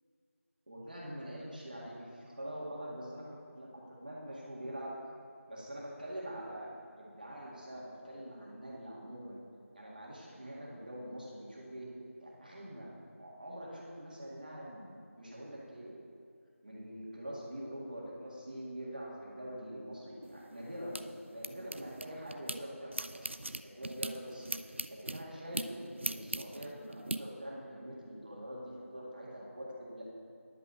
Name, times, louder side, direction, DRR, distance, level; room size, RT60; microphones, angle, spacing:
voice 1, 0.7-5.0 5.5-9.4 9.7-11.9 12.2-12.9 13.2-16.0 16.6-21.0 21.3-23.3 23.6-30.0, equal, 35° right, -5 dB, 1.9 m, -44 dB
sound 1, 20.2-22.6 22.9-27.2, right 2 dB, 55° right, 0.4 m, -40 dB
10.5 x 5.8 x 7.1 m, 2.3 s
figure-of-eight pair, 175°, 8 cm